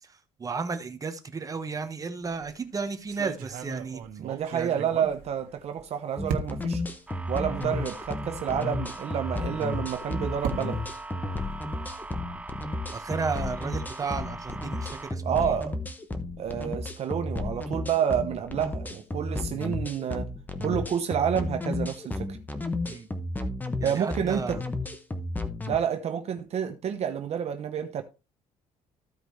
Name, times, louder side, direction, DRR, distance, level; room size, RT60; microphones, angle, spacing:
voice 1, 0.0-4.0 4.5-4.9 12.9-15.6 22.8-23.1 23.8-24.6, right 4 dB, 25° right, 1.1 m, -34 dB
sound 1, 2.2-2.5 3.1-5.8 6.3-6.8 7.6-7.7 8.0-8.1 9.7-12.1, right 6 dB, 85° right, 1.5 m, -37 dB
voice 2, 4.2-6.8 7.3-10.8 15.2-15.8 16.4-20.3 20.6-22.4 23.8-24.6 25.7-28.0, right 8 dB, 50° right, 0.9 m, -29 dB
sound 2, 6.2-25.8, left 2 dB, 10° left, 1.1 m, -33 dB
sound 3, 7.1-15.1, right 2 dB, 10° right, 0.4 m, -41 dB
14.5 x 5.0 x 3.2 m
cardioid pair, 130°, 14 cm